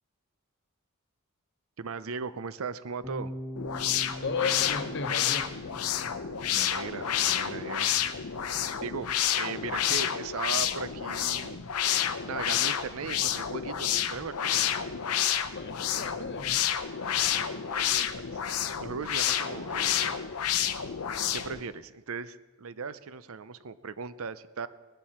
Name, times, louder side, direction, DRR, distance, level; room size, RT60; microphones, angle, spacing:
voice 1, 1.8-3.3 6.5-7.9 8.8-11.6 11.9-12.0 12.2-14.7 17.7-18.4 18.8-20.3 21.3-24.7, right 5 dB, 70° right, 14 dB, 0.6 m, -38 dB
Bass guitar, 3.0-9.3, equal, 10° right, 1.3 m, -44 dB
sound 1, 3.6-21.6, left 9 dB, 90° left, 0.7 m, -29 dB
voice 2, 4.2-5.6 15.5-16.7, left 4 dB, 50° left, 8 dB, 1.0 m, -34 dB
19.0 x 12.0 x 4.3 m, 1.3 s
head